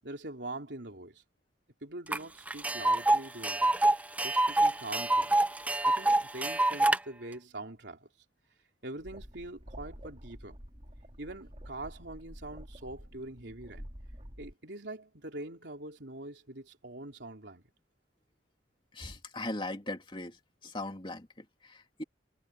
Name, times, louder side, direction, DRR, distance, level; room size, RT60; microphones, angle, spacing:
voice 1, 0.0-1.2 1.8-3.7 4.2-5.4 5.8-8.1 8.8-10.6 11.2-13.9 14.4-17.6, right 2 dB, 75° right, 3.4 m, -43 dB
Tick, 2.1-2.2 2.5-7.0, right 2 dB, 10° right, 0.6 m, -26 dB
sound 1, 9.0-14.5, equal, 35° right, 5.9 m, -48 dB
voice 2, 18.9-22.0, left 2 dB, 30° left, 2.7 m, -39 dB
head